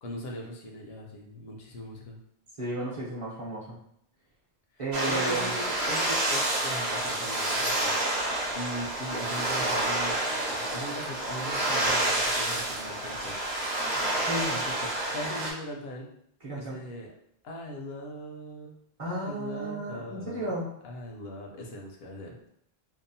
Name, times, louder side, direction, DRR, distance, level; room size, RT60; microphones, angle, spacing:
voice 1, 0.0-2.2 4.7-8.0 8.5-13.4 14.5-16.1 16.5-17.1 17.4-18.7 19.0-20.5 20.8-22.5, equal, 75° left, 1 dB, 0.8 m, -40 dB
voice 2, 2.6-3.8 4.8-5.5 14.2-14.5 16.4-16.8 19.0-20.7, right 2 dB, 35° right, -7 dB, 0.7 m, -33 dB
sound 1, 4.9-15.5, right 1 dB, 85° right, 0.9 m, -29 dB
2.7 x 2.0 x 2.6 m, 0.71 s
omnidirectional pair, 1.0 m